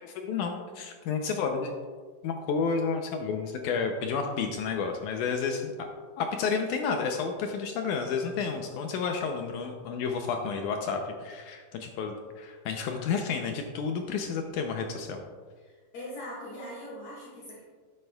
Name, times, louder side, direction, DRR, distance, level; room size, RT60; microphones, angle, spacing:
voice 1, 0.0-1.7 2.2-5.9 6.2-15.2, left 5 dB, 75° left, 4 dB, 1.9 m, -31 dB
voice 2, 15.6-17.6, equal, 55° left, -6 dB, 2.9 m, -41 dB
12.0 x 9.6 x 2.3 m, 1.6 s
omnidirectional pair, 4.1 m